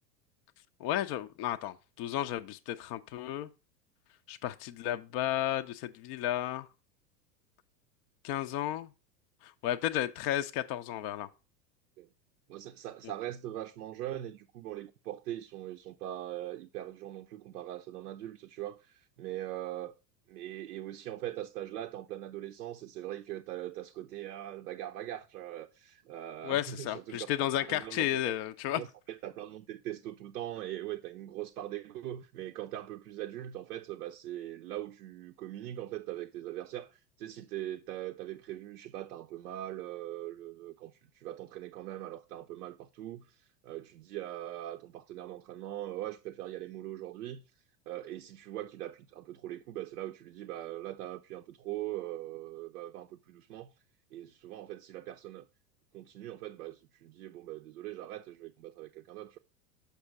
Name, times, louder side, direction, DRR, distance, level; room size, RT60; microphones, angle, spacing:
voice 1, 0.8-3.5 4.3-6.7 8.2-8.9 9.4-11.3 26.4-28.8, left 12 dB, 30° left, 0.4 m, -33 dB
voice 2, 12.5-19.9 20.3-28.3 28.7-47.4 47.9-53.7 54.1-55.5 55.9-59.4, right 13 dB, 65° right, 0.7 m, -41 dB
6.6 x 5.7 x 4.7 m
figure-of-eight pair, 85°, 50 cm